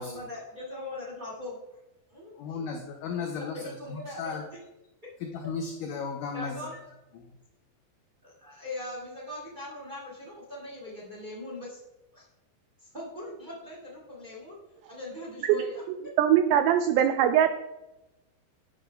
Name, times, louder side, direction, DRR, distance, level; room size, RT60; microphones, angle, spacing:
voice 1, 0.0-1.6 2.1-2.3 3.3-4.3 6.3-6.8 8.2-11.8 12.1-12.2 12.8-14.6 14.9-15.8, left 1 dB, 40° right, -4 dB, 0.6 m, -40 dB
voice 2, 2.4-4.4 5.2-6.6 7.2-7.3, left 5 dB, 90° left, 2 dB, 1.8 m, -35 dB
voice 3, 16.2-17.5, right 10 dB, 90° right, 8 dB, 2.1 m, -21 dB
11.0 x 10.5 x 2.2 m, 0.97 s
omnidirectional pair, 4.8 m